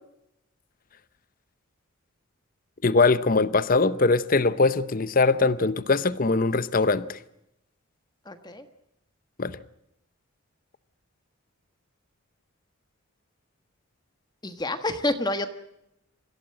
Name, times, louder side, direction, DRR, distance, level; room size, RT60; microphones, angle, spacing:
voice 1, 2.8-7.2 9.4-9.6, left 3 dB, 40° left, 0.7 m, -22 dB
voice 2, 8.3-8.6 14.4-15.5, left 1 dB, 20° left, 1.3 m, -28 dB
26.0 x 16.0 x 7.7 m
head